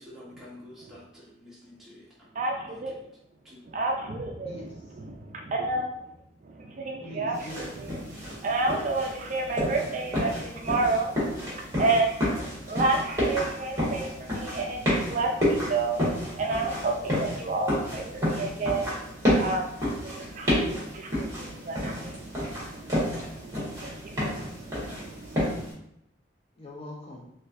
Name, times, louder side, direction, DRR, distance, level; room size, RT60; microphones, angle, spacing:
voice 1, 0.0-2.4 2.6-3.1 3.4-3.6, left 1 dB, ahead, -8 dB, 1.0 m, -49 dB
voice 2, 2.3-2.9 3.7-4.6 5.0-5.9 6.4-7.9 8.1-12.2 12.6-25.7, right 3 dB, 40° right, 1 dB, 0.3 m, -31 dB
voice 3, 4.4-5.0 7.0-7.8 13.2-13.6 26.6-27.3, left 1 dB, 30° left, -2 dB, 0.5 m, -42 dB
sound 1, 7.3-25.7, equal, 15° right, 1.3 m, -30 dB
4.2 x 2.5 x 2.5 m, 0.78 s
head